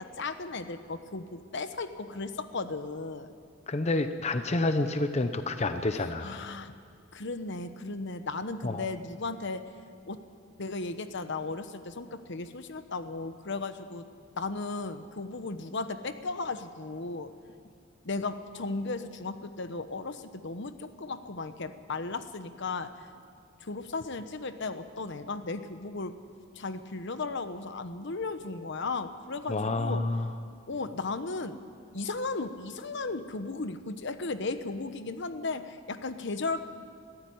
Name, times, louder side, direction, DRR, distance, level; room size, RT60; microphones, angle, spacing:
voice 1, 0.0-3.3 5.9-6.7 7.1-9.7 10.1-10.2 10.6-14.1 14.4-17.3 18.0-23.1 23.6-26.2 26.5-30.0 30.7-31.6 31.9-36.6, left 3 dB, 65° left, 10 dB, 1.0 m, -35 dB
voice 2, 3.7-6.5 8.6-8.8 29.5-30.3, left 2 dB, 35° left, 9 dB, 0.7 m, -29 dB
21.0 x 15.0 x 9.4 m, 2.3 s
head